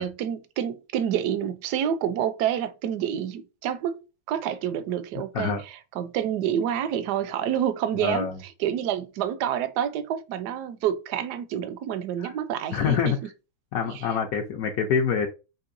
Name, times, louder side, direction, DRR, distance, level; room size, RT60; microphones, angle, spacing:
voice 1, 0.0-4.0 4.3-13.1 13.9-14.0, right 9 dB, 75° right, 0.9 m, -28 dB
voice 2, 8.0-8.4 12.2-12.3 12.7-13.2 13.7-15.3, left 7 dB, 70° left, 0.8 m, -26 dB
5.6 x 3.1 x 2.6 m
omnidirectional pair, 2.2 m